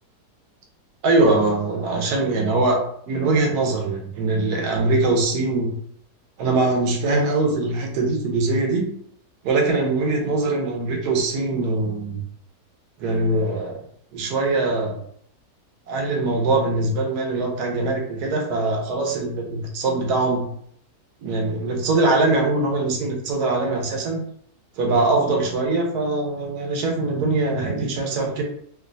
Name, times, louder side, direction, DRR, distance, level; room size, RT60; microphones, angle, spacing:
voice 1, 1.0-5.7 6.4-8.9 9.4-12.2 13.0-13.8 14.1-15.0 15.9-20.5 21.2-24.2 24.8-28.4, right 2 dB, 75° right, 2 dB, 1.3 m, -22 dB
3.2 x 2.6 x 2.5 m, 0.64 s
omnidirectional pair, 1.7 m